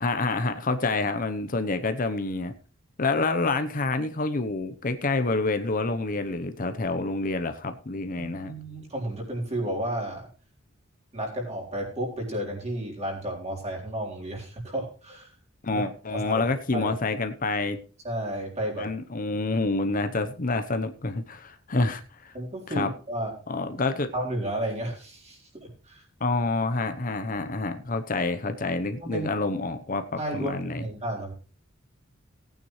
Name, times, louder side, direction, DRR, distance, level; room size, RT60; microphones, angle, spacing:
voice 1, 0.0-2.5 3.0-8.5 15.6-17.8 18.8-22.3 22.7-22.9 23.5-24.1 26.2-30.8, left 3 dB, 45° left, 9 dB, 0.9 m, -28 dB
voice 2, 8.1-10.3 11.1-15.3 15.7-15.8 16.1-16.4 16.7-16.9 18.0-18.9 22.3-23.3 24.1-26.0 29.0-29.3 30.2-31.3, right 1 dB, 35° right, -1 dB, 3.8 m, -32 dB
18.0 x 9.1 x 3.2 m, 0.37 s
head